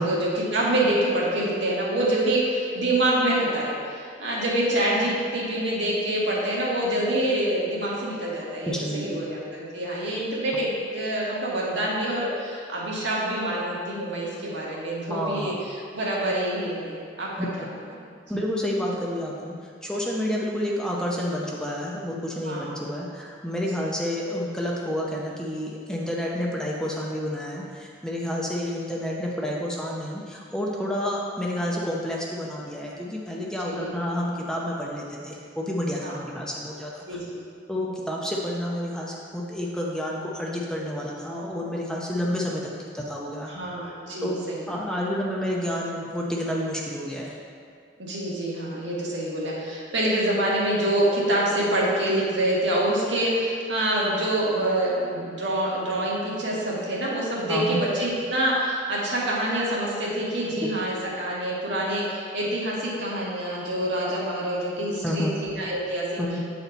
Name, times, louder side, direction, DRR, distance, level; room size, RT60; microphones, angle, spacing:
voice 1, 0.0-17.6 22.4-22.7 23.7-23.9 33.6-33.9 36.0-36.2 37.1-37.4 43.5-44.7 48.0-66.2, right 1 dB, 80° right, -5 dB, 1.6 m, -26 dB
voice 2, 8.7-9.2 15.1-15.5 17.4-17.5 18.3-37.2 37.7-42.6 42.9-43.5 44.2-44.4 44.7-47.3 57.5-57.8 60.6-60.7 65.0-65.4 66.2-66.4, left 1 dB, 5° left, -3 dB, 0.6 m, -29 dB
8.3 x 4.2 x 4.0 m, 2.2 s
head